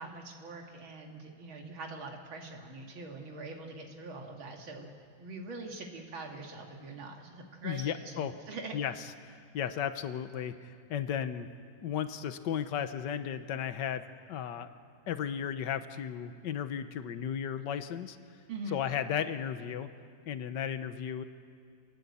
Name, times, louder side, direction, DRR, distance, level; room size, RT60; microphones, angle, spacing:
voice 1, 0.0-4.9 5.2-8.7 18.5-18.8, right 3 dB, 90° right, 2 dB, 2.9 m, -43 dB
voice 2, 7.6-8.3 8.7-8.9 9.2-11.5 11.8-14.0 14.3-14.7 15.1-18.2 18.7-19.9 20.3-21.2, left 9 dB, 65° left, 10 dB, 1.7 m, -34 dB
27.5 x 19.5 x 8.5 m, 2.1 s
omnidirectional pair, 2.1 m